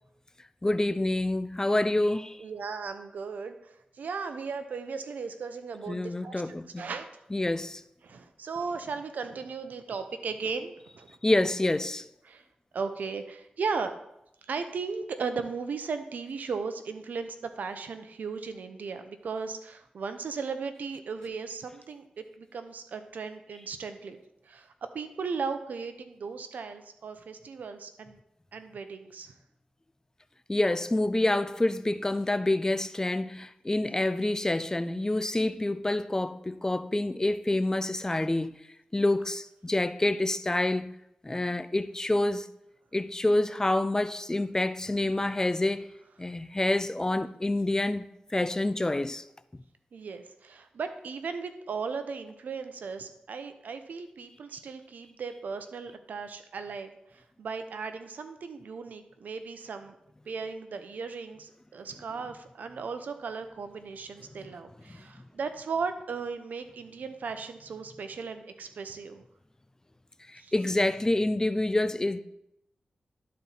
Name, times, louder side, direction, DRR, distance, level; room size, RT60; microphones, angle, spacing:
voice 1, 0.6-2.4 5.9-6.9 7.3-7.8 11.2-12.0 30.5-38.6 38.9-40.9 41.2-42.5 42.9-45.9 46.2-48.0 48.3-49.2 70.3-72.2, left 2 dB, 20° left, 0.4 m, -27 dB
voice 2, 2.4-7.1 7.4-7.6 8.0-11.2 12.2-12.4 12.7-13.9 14.4-24.2 24.4-28.2 28.5-29.3 49.9-60.0 60.3-69.2 70.4-70.5, right 5 dB, 85° right, 0.7 m, -36 dB
12.0 x 4.3 x 4.0 m
cardioid pair, 60°, 3 cm